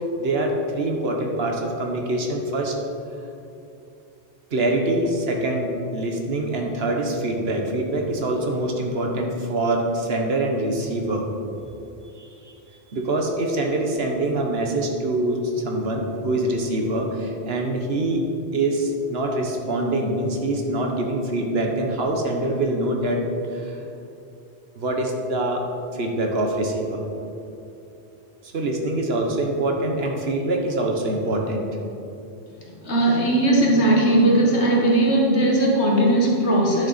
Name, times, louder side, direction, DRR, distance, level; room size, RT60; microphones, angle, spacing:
voice 1, 0.2-2.7 4.5-11.2 12.2-12.5 12.9-18.2 18.5-23.3 23.5-23.7 24.8-25.6 25.9-27.0 28.5-31.6, right 1 dB, 65° right, 1 dB, 1.3 m, -24 dB
voice 2, 32.6-36.9, right 1 dB, 80° left, -2 dB, 1.9 m, -18 dB
10.0 x 6.5 x 4.2 m, 2.7 s
omnidirectional pair, 1.1 m